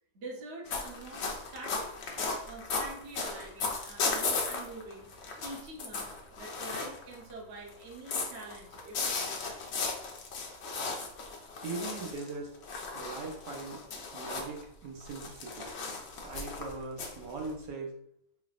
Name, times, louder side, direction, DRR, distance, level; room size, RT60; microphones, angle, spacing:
voice 1, 0.1-9.9, right 2 dB, 50° right, -1 dB, 0.8 m, -46 dB
sound 1, 0.7-7.3 7.7-14.6 15.0-17.7, left 4 dB, 80° left, 0.5 m, -36 dB
voice 2, 11.6-12.6 12.9-13.8 14.1-15.7 16.2-17.9, right 3 dB, 75° right, 1 dB, 1.3 m, -40 dB
4.0 x 3.3 x 2.4 m, 0.71 s
omnidirectional pair, 1.9 m